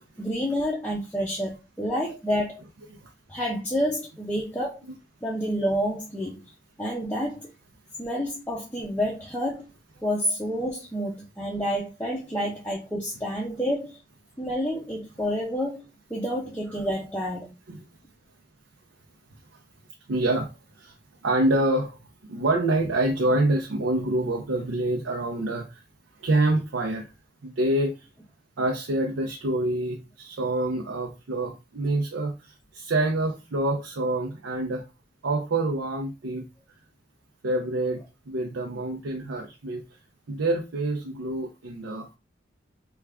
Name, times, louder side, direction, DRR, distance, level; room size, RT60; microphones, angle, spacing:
voice 1, 0.2-2.6 3.3-4.8 5.2-6.4 6.8-7.5 8.0-9.7 10.0-14.0 14.4-17.5, equal, 10° left, 0.5 m, -29 dB
voice 2, 20.1-21.0 21.2-22.0 22.3-25.8 26.2-27.1 27.4-28.1 28.6-34.9 35.2-36.5 37.4-39.8 40.3-42.1, right 2 dB, 85° right, 0.6 m, -26 dB
3.3 x 2.3 x 3.5 m
head